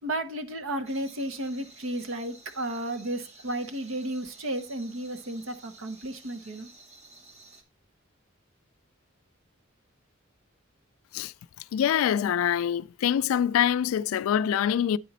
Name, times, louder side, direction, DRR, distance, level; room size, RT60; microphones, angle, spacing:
voice 1, 0.0-6.7, right 1 dB, 85° right, 0.9 m, -33 dB
sound 1, 0.9-7.6, right 2 dB, 35° right, 1.1 m, -53 dB
voice 2, 11.7-15.0, left 9 dB, 90° left, 0.3 m, -25 dB
9.2 x 4.1 x 4.0 m
head